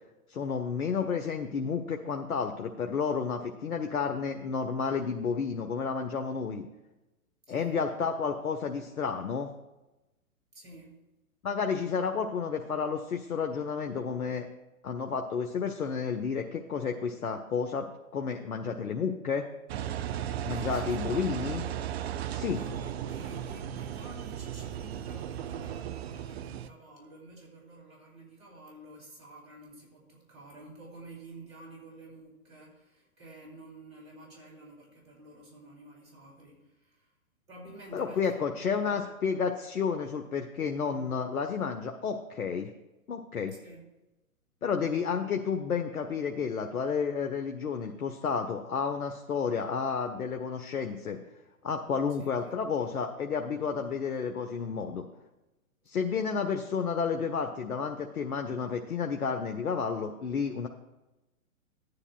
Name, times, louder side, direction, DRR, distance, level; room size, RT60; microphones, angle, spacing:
voice 1, 0.3-6.7 7.5-9.5 11.4-14.5 14.8-19.5 20.5-21.7 22.2-22.6 37.9-42.7 43.1-43.6 44.6-51.2 51.6-55.1 55.9-60.7, left 6 dB, 90° left, 5 dB, 0.8 m, -31 dB
voice 2, 7.5-7.8 10.5-11.0 20.5-21.9 22.2-37.1 37.5-39.1 40.9-41.1 43.6-43.9 52.2-52.9, right 2 dB, 75° right, -2 dB, 3.3 m, -50 dB
Engine, 19.7-26.7, right 10 dB, 50° right, 0.5 m, -36 dB
14.5 x 9.7 x 2.3 m, 1.0 s
hypercardioid pair, 125°, 42 cm